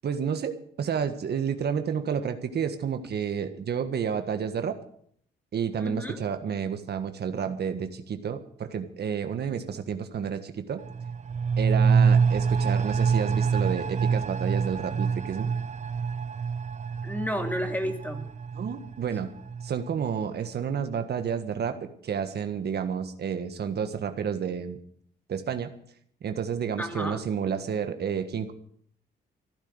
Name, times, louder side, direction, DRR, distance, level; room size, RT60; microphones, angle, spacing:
voice 1, 0.0-4.7 5.5-10.8 11.6-15.5 18.5-19.3 19.6-24.8 25.3-25.7 26.2-28.5, right 7 dB, 55° right, 8 dB, 1.6 m, -30 dB
voice 2, 5.8-6.2 17.0-18.3 26.8-27.2, equal, 10° left, 6 dB, 2.5 m, -31 dB
sound 1, 10.8-20.2 20.5-20.6, right 6 dB, 35° right, 0.8 m, -26 dB
15.5 x 10.0 x 8.1 m, 0.63 s
cardioid pair, 90°, 20 cm